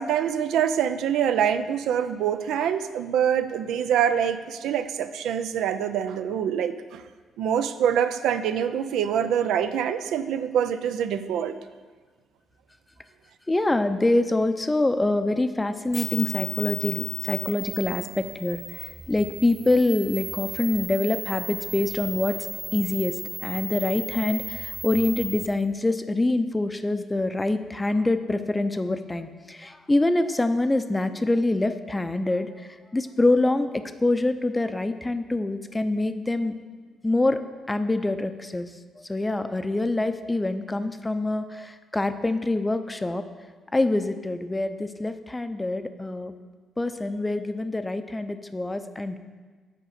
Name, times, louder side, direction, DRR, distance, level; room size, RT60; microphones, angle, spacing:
voice 1, 0.0-7.0 7.4-11.6, right 8 dB, 85° right, 10 dB, 0.4 m, -25 dB
voice 2, 13.5-22.4 22.7-36.5 37.0-37.4 37.7-38.7 39.0-43.2 43.7-46.3 46.8-49.2, left 2 dB, 15° left, 10 dB, 0.5 m, -25 dB
sound 1, 15.9-25.5, right 1 dB, 10° right, 1.0 m, -36 dB
sound 2, 19.3-25.6, right 5 dB, 60° right, 1.3 m, -42 dB
7.5 x 5.2 x 6.6 m, 1.5 s
cardioid pair, 90°, 0 cm